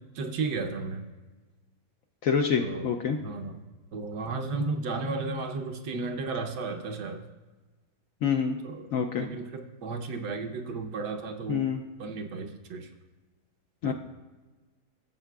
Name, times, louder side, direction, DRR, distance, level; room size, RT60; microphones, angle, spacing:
voice 1, 0.1-1.0 2.6-2.9 3.2-3.6 3.9-7.2 8.6-8.9 9.2-11.7 12.0-12.9 13.8-13.9, right 3 dB, 70° right, 4 dB, 1.3 m, -33 dB
voice 2, 2.2-3.2 8.2-8.6 8.9-9.3 11.5-11.8 13.8-13.9, left 6 dB, 70° left, 3 dB, 0.8 m, -26 dB
15.0 x 7.5 x 2.3 m, 1.3 s
omnidirectional pair, 1.8 m